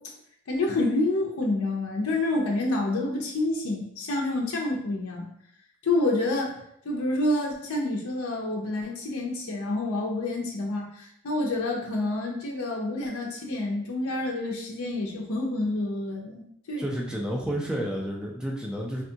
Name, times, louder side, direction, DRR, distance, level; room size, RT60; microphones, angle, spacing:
voice 1, 0.5-5.3 5.8-6.6 6.8-16.9, left 2 dB, 75° left, -1 dB, 0.5 m, -28 dB
voice 2, 16.8-19.0, equal, 5° right, -2 dB, 0.4 m, -30 dB
3.5 x 2.3 x 2.7 m, 0.72 s
head